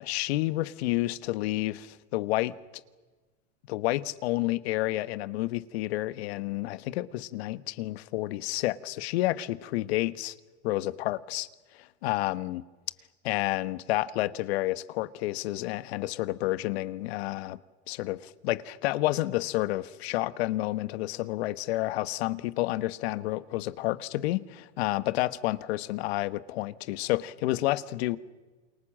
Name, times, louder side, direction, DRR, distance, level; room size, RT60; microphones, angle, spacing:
voice 1, 0.0-2.5 3.7-10.3 10.6-11.5 11.8-12.6 13.2-17.6 17.9-28.2, left 17 dB, 70° left, 1.2 m, -30 dB
28.0 x 23.5 x 7.5 m
hypercardioid pair, 115°, 33 cm